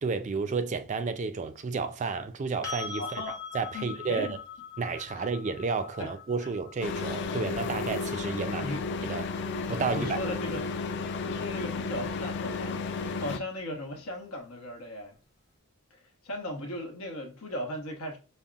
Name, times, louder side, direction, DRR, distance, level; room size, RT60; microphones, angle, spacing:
voice 1, 0.0-3.2 3.5-4.3 4.8-8.6 9.0-9.2 9.7-10.2, right 4 dB, 35° right, 0.3 m, -31 dB
sound 1, 2.6-10.5 13.3-13.4, left 5 dB, 15° left, 0.7 m, -43 dB
voice 2, 3.0-3.4 3.7-4.4 4.9-5.3 6.0-6.1 6.4-6.5 8.5-8.8 9.9-10.7 11.2-15.2 15.9-18.2, left 1 dB, 90° left, 1.0 m, -37 dB
sound 2, 6.8-13.4, left 4 dB, 50° left, 0.4 m, -33 dB
5.3 x 2.1 x 2.3 m
head